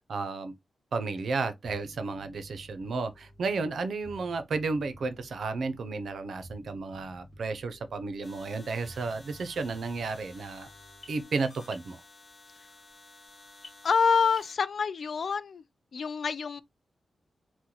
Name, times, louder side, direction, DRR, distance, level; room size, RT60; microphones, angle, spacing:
voice 1, 0.1-0.5 0.9-10.7 11.1-12.0, right 4 dB, 65° right, 0.5 m, -33 dB
Bass guitar, 1.6-11.2, equal, 15° right, 1.0 m, -53 dB
sound 1, 8.2-14.6, left 3 dB, 35° left, 1.0 m, -52 dB
voice 2, 13.8-15.6 15.9-16.6, left 5 dB, 50° left, 0.3 m, -26 dB
3.0 x 2.0 x 3.9 m
wide cardioid pair, 155°, 0 cm